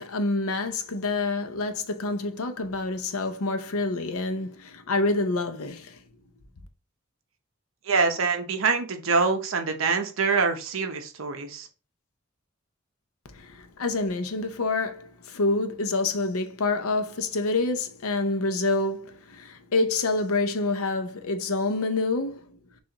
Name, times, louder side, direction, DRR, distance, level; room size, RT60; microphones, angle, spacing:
voice 1, 0.0-6.0 13.3-22.6, left 3 dB, 85° left, 0.6 m, -27 dB
voice 2, 7.8-11.7, right 4 dB, 70° right, 0.7 m, -25 dB
6.1 x 2.4 x 2.9 m
head